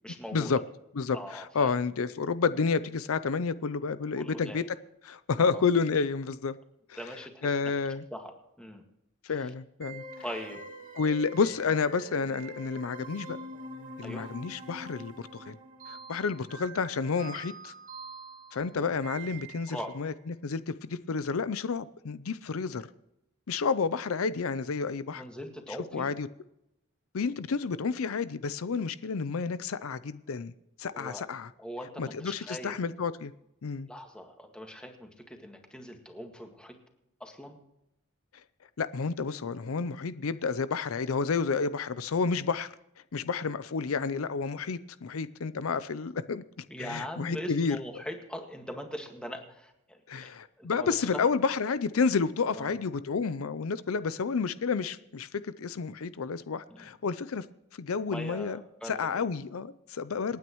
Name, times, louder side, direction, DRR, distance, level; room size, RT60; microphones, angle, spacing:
voice 1, 0.0-0.5 1.1-1.7 4.2-4.7 5.4-5.6 7.0-7.5 8.1-8.3 8.6-8.8 10.2-10.6 14.0-14.3 18.8-18.9 19.7-19.9 25.1-26.1 30.9-31.2 31.6-32.7 33.9-36.7 37.2-37.6 46.7-50.0 50.6-50.9 52.5-52.8 56.7-56.9 58.1-58.9 60.3-60.4, equal, 5° left, 3 dB, 1.8 m, -41 dB
voice 2, 0.9-4.6 5.0-6.6 6.9-7.1 7.4-8.0 9.2-10.0 10.9-13.4 14.0-15.6 15.9-17.7 18.5-22.8 23.5-25.2 25.9-26.3 27.1-30.5 30.8-31.5 32.0-33.3 33.6-33.9 38.8-42.7 43.1-46.4 46.8-47.8 50.1-57.5 57.8-60.4, left 5 dB, 80° left, 15 dB, 0.5 m, -30 dB
sound 1, 9.8-20.0, right 2 dB, 40° right, 2.1 m, -45 dB
27.5 x 9.3 x 3.1 m, 0.86 s
head